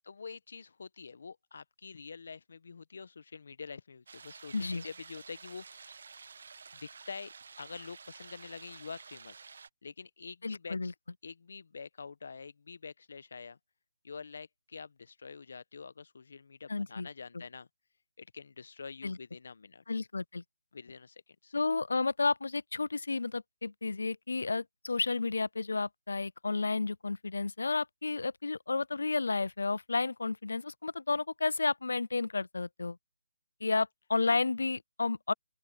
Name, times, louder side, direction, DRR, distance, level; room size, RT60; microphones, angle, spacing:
voice 1, 0.0-6.1 6.7-9.4 9.8-10.9 11.2-13.6 14.0-17.7 18.2-19.8 20.7-21.5, left 5 dB, 60° left, 1.2 m, -46 dB
sound 1, 4.1-9.7, right 5 dB, 60° right, 1.8 m, -51 dB
voice 2, 4.5-4.8 10.4-10.9 16.7-17.1 19.0-19.2 19.9-20.4 21.5-33.0 33.6-35.3, left 3 dB, 75° left, 0.5 m, -32 dB
open air
figure-of-eight pair, 160°, 0 cm